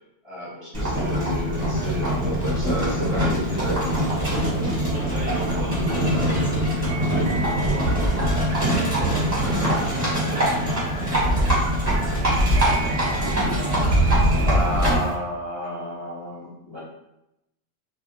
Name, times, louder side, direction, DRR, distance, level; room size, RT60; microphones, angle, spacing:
voice 1, 0.2-3.9 4.2-4.3 9.4-9.7 12.9-16.8, left 1 dB, 30° left, -10 dB, 0.5 m, -32 dB
Livestock farm animals working animals, 0.7-15.1, right 1 dB, 35° right, 1.0 m, -22 dB
sound 1, 1.6-4.8 6.2-7.6, left 1 dB, 85° left, 1.1 m, -38 dB
voice 2, 4.5-8.5 9.0-10.8, right 2 dB, 60° right, -5 dB, 0.7 m, -36 dB
sound 2, 6.9-15.2, right 2 dB, 90° right, 0.3 m, -36 dB
2.4 x 2.0 x 2.7 m, 0.89 s
omnidirectional pair, 1.3 m